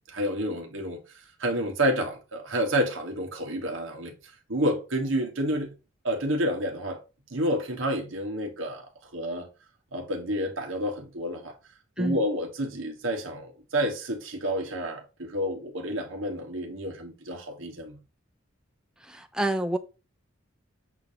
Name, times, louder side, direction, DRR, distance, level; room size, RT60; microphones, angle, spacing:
voice 1, 0.1-1.0 1.4-4.1 4.5-5.7 6.0-7.0 7.3-9.5 9.9-11.5 12.0-18.0, equal, 65° right, 1.7 m, -29 dB
voice 2, 19.0-19.8, right 1 dB, 5° right, 0.6 m, -28 dB
8.0 x 2.9 x 5.1 m
head